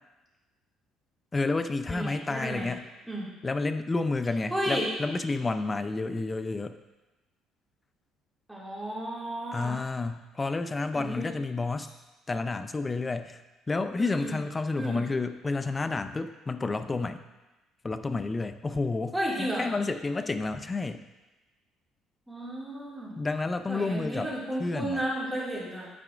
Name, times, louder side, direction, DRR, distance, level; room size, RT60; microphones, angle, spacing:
voice 1, 1.3-2.9 3.4-6.8 9.5-11.9 12.3-13.4 13.7-17.2 17.8-21.0 23.2-24.3 24.6-25.0, left 3 dB, 25° left, 10 dB, 0.4 m, -30 dB
voice 2, 1.9-2.7 3.1-3.3 4.5-4.9 8.5-9.8 10.9-11.3 14.0-14.4 14.8-15.0 19.1-19.7 22.3-23.2 23.7-25.9, right 1 dB, 5° right, -5 dB, 2.2 m, -33 dB
11.0 x 4.8 x 2.5 m, 1.1 s
supercardioid pair, 85°, 0 cm